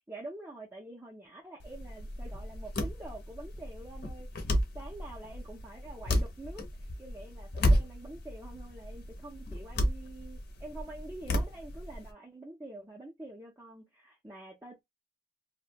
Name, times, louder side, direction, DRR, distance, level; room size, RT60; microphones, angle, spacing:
voice 1, 0.1-14.8, right 2 dB, 10° right, 0.4 m, -47 dB
sound 1, 1.6-12.1, equal, 50° left, 0.6 m, -33 dB
2.5 x 2.1 x 2.8 m
head